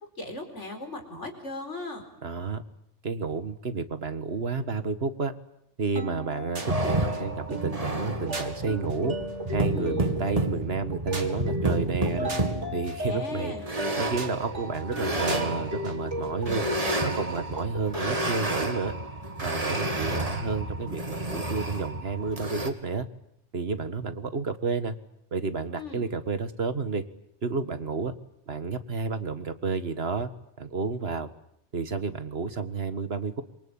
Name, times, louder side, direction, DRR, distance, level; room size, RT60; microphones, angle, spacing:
voice 1, 0.2-2.1 9.7-10.1 13.0-13.7 25.7-26.0, left 3 dB, 90° left, 5 dB, 4.9 m, -38 dB
voice 2, 2.2-2.6 3.0-5.3 5.8-9.2 9.5-12.3 12.7-13.5 14.0-16.7 17.0-18.9 19.4-23.1 23.5-25.0 25.3-27.0 27.4-28.1 28.5-30.3 30.6-31.3 31.7-33.4, right 4 dB, 60° right, 10 dB, 1.9 m, -31 dB
sound 1, 6.0-18.1, right 1 dB, 85° right, 2.9 m, -35 dB
sound 2, 6.6-22.7, right 1 dB, 30° right, 2.3 m, -31 dB
26.5 x 24.0 x 8.8 m, 0.76 s
omnidirectional pair, 1.2 m